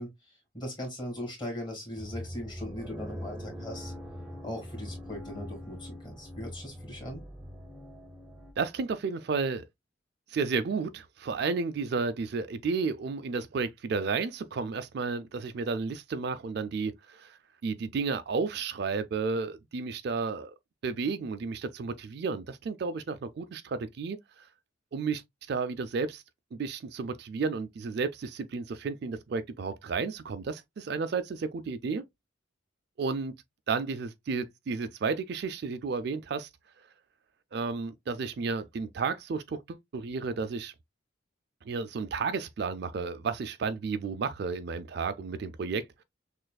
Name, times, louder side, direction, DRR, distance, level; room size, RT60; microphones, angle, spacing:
voice 1, 0.0-3.9 4.4-7.2, left 1 dB, 20° left, 2.1 m, -39 dB
sound 1, 2.0-8.5, equal, 10° right, 0.8 m, -42 dB
voice 2, 8.6-9.6 10.3-20.5 20.8-24.5 24.9-25.2 25.5-26.2 26.5-32.0 33.0-33.3 33.7-36.5 37.5-40.7 41.7-45.8, right 4 dB, 50° right, 0.3 m, -32 dB
6.3 x 2.4 x 2.2 m
head